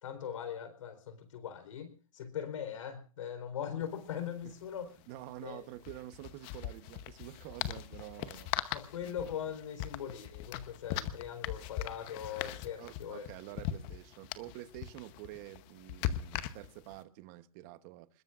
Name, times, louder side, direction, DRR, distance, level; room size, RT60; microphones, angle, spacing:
voice 1, 0.0-4.9 5.4-5.6 8.7-13.3, left 8 dB, 65° left, 4.1 m, -40 dB
sound 1, 3.8-3.9 4.1-4.3 5.8-17.0, left 12 dB, 25° left, 0.9 m, -40 dB
voice 2, 5.1-8.5 9.0-9.2 12.8-18.2, right 15 dB, 30° right, 1.0 m, -48 dB
25.5 x 21.0 x 2.5 m
hypercardioid pair, 160°, 18 cm